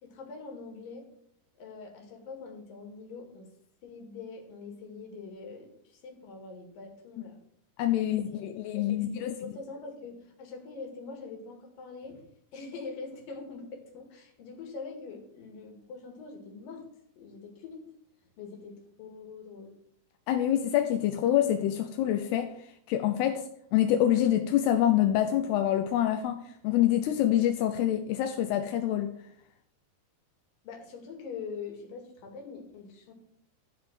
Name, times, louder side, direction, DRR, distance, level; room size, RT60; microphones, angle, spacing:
voice 1, 0.0-1.1 1.6-3.5 3.8-7.4 8.0-8.4 8.7-12.2 12.5-16.8 17.2-17.9 18.4-19.7 30.6-33.1, left 4 dB, 60° left, 3 dB, 3.7 m, -44 dB
voice 2, 7.8-9.3 20.3-29.1, left 11 dB, 85° left, 6 dB, 2.8 m, -26 dB
13.0 x 4.9 x 7.3 m, 0.68 s
omnidirectional pair, 4.6 m